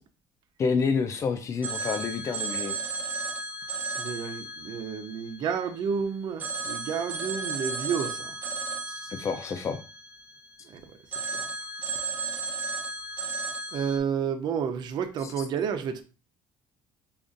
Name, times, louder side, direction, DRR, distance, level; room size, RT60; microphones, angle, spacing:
voice 1, 0.6-2.8 8.9-9.8, left 5 dB, 35° left, 0.4 m, -28 dB
Telephone, 1.6-5.9 6.4-10.6 11.1-14.0, right 3 dB, 20° right, 0.9 m, -34 dB
voice 2, 3.9-8.4 10.6-11.4 13.7-16.0, right 7 dB, 55° right, 0.6 m, -31 dB
5.0 x 2.4 x 2.5 m
cardioid pair, 125°, 9 cm